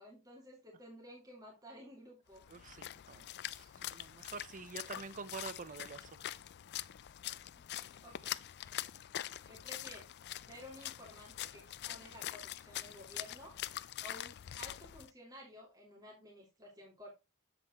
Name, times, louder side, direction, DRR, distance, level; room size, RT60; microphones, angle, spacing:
voice 1, 0.0-2.4 4.9-5.0 8.0-8.4 9.5-10.1 10.5-13.5 14.0-17.1, equal, 15° right, 2.3 m, -53 dB
Splash splatter, 2.3-15.1, left 13 dB, 50° left, 0.4 m, -44 dB
voice 2, 2.5-3.3 3.5-6.2 8.9-9.0 9.3-9.4, right 5 dB, 40° right, 0.6 m, -47 dB
7.8 x 7.6 x 2.9 m
head